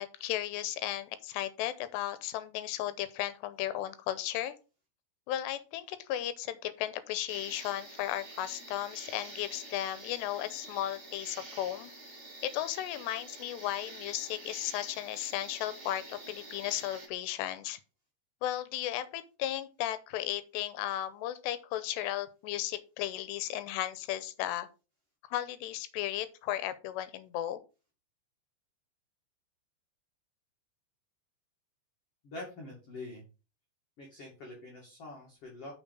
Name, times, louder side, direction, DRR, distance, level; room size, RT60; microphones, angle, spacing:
voice 1, 0.0-4.5 5.3-11.9 12.4-17.8 18.4-24.7 25.3-27.6, left 13 dB, 85° left, 2.8 m, -35 dB
sound 1, 7.3-17.1, right 2 dB, 20° right, 2.0 m, -48 dB
voice 2, 32.2-33.2 34.0-35.7, left 2 dB, 40° left, 2.7 m, -45 dB
7.2 x 5.9 x 5.5 m
omnidirectional pair, 5.0 m